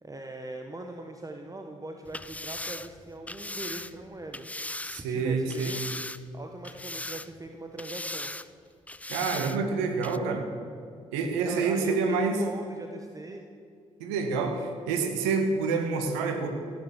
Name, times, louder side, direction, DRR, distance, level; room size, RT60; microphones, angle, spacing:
voice 1, 0.0-4.5 4.9-6.0 6.3-8.3 9.1-9.7 10.2-10.4 11.3-13.4, right 2 dB, 25° right, 4 dB, 1.3 m, -41 dB
sound 1, 2.0-5.0 5.5-6.4 6.6-7.5 7.8-8.5 8.9-9.6 10.0-10.2, left 2 dB, 10° left, 0.6 m, -38 dB
voice 2, 4.8-5.8 9.1-10.4 11.1-12.4 14.0-16.5, right 4 dB, 80° right, 5 dB, 1.4 m, -28 dB
15.5 x 9.4 x 6.8 m, 2.4 s
hypercardioid pair, 40°, 15 cm